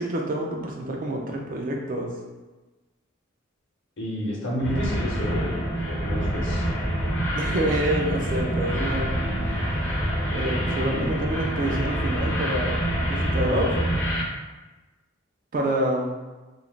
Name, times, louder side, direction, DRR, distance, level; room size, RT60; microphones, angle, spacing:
voice 1, 0.0-2.1 7.4-9.1 10.3-13.7 15.5-16.1, right 1 dB, 40° right, 0 dB, 0.4 m, -27 dB
voice 2, 4.0-5.6 5.9-6.7, equal, 65° left, -4 dB, 0.8 m, -30 dB
sound 1, 4.6-14.2, equal, 10° left, 0.6 m, -26 dB
3.1 x 2.4 x 2.4 m, 1.2 s
head